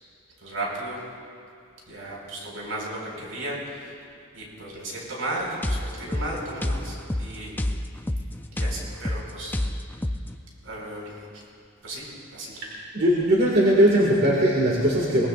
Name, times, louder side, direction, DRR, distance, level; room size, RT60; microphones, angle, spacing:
voice 1, 0.4-1.1 1.9-3.9 4.3-7.6 8.5-9.6 10.6-11.3 11.8-12.6, right 1 dB, 75° right, -3 dB, 4.7 m, -34 dB
sound 1, 5.6-10.4, left 1 dB, 10° left, 0.4 m, -29 dB
voice 2, 12.9-15.3, equal, 50° right, -4 dB, 1.9 m, -19 dB
23.0 x 19.5 x 2.5 m, 2.4 s
head